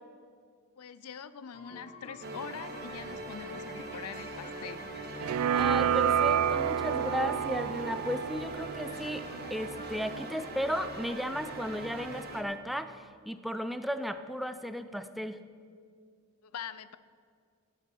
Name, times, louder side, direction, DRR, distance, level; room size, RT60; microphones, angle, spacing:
voice 1, 0.8-4.8 16.4-17.0, left 7 dB, 85° left, 14 dB, 0.5 m, -43 dB
sound 1, 1.5-12.1, left 2 dB, 30° left, 1.4 m, -50 dB
sound 2, 2.2-12.4, right 2 dB, 45° right, 1.2 m, -42 dB
sound 3, 5.2-10.3, right 8 dB, 75° right, 0.3 m, -30 dB
voice 2, 5.5-9.2 9.5-13.0 13.3-15.4, equal, ahead, 10 dB, 0.4 m, -35 dB
14.0 x 9.5 x 5.3 m, 2.1 s
head